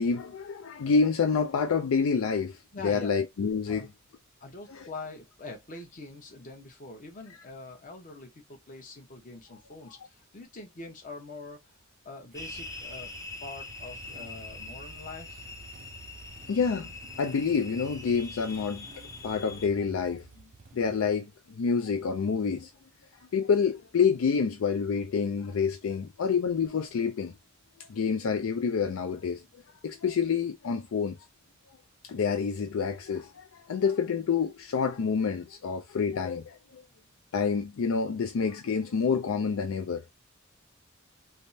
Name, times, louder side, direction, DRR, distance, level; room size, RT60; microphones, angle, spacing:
voice 1, 0.0-2.6 2.8-3.9 16.5-16.9 17.2-18.9 19.2-20.2 20.7-22.7 23.3-27.3 27.9-29.4 29.8-31.2 32.0-36.8 37.3-40.0, left 5 dB, 75° left, 0.4 m, -28 dB
voice 2, 2.7-3.1 3.7-3.9 4.4-11.7 12.0-13.1 13.4-15.5, left 3 dB, 40° left, 0.9 m, -44 dB
sound 1, 12.3-19.7, left 3 dB, 15° left, 0.5 m, -43 dB
Motorcycle / Engine starting, 12.3-21.2, right 3 dB, 40° right, 0.4 m, -50 dB
3.4 x 2.1 x 2.6 m
head